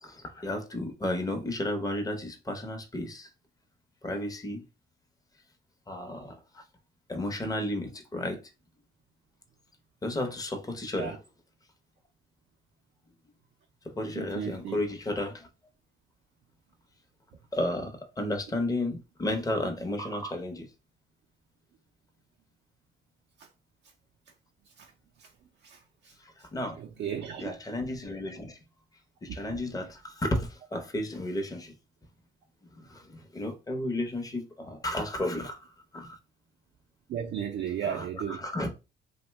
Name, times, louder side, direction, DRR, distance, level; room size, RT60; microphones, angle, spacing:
voice 1, 0.0-3.3 4.0-4.6 5.9-6.6 7.1-8.4 10.0-11.2 14.0-15.5 17.5-20.7 26.5-26.8 27.4-28.6 29.2-31.7 32.8-35.6 35.9-36.2 37.8-38.7, left 1 dB, 20° left, 0.7 m, -33 dB
voice 2, 14.1-14.8 24.8-24.9 25.2-25.3 25.6-25.8 26.0-26.1 26.8-27.5 29.5-29.7 37.1-38.4, right 8 dB, 60° right, 0.4 m, -35 dB
2.6 x 2.2 x 3.2 m
cardioid pair, 90°, 20 cm